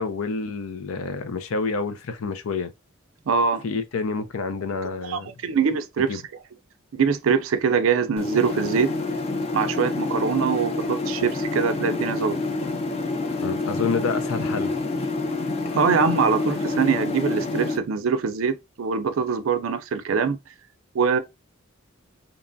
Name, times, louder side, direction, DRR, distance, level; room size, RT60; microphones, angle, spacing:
voice 1, 0.0-2.7 3.6-5.3 6.1-6.2 13.4-14.7, left 4 dB, 90° left, 0.5 m, -28 dB
voice 2, 3.3-3.6 5.1-6.2 6.9-8.9 9.5-12.4 15.7-20.4 20.9-21.2, right 5 dB, 75° right, 0.4 m, -23 dB
sound 1, 8.2-17.8, left 2 dB, 30° left, 0.3 m, -27 dB
2.9 x 2.2 x 2.5 m
head